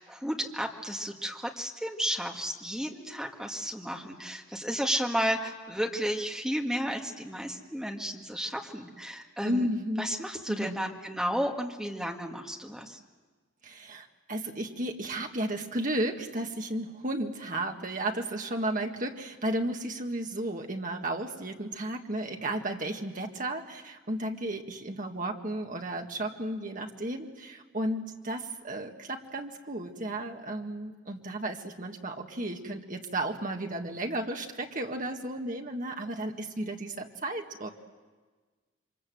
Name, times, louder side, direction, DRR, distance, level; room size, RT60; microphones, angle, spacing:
voice 1, 0.0-9.7 10.0-13.0, equal, ahead, 1 dB, 1.7 m, -33 dB
voice 2, 9.4-10.1 10.5-10.8 13.6-37.7, right 1 dB, 40° right, 3 dB, 1.8 m, -33 dB
28.0 x 24.5 x 7.8 m, 1.4 s
head